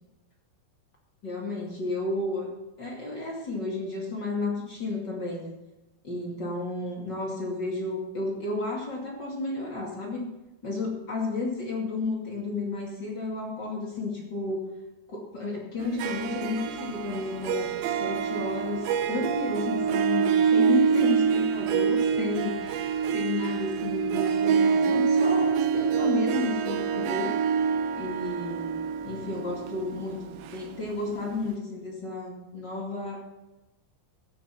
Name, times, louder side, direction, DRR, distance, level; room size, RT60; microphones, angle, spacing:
voice 1, 1.2-2.5 2.8-5.5 6.0-10.2 10.6-14.6 15.1-27.3 27.9-28.7 29.0-33.2, left 2 dB, 30° left, -2 dB, 2.2 m, -32 dB
Harp, 15.8-31.2, right 6 dB, 75° right, 2.3 m, -26 dB
16.5 x 6.3 x 5.9 m, 1.0 s
omnidirectional pair, 5.2 m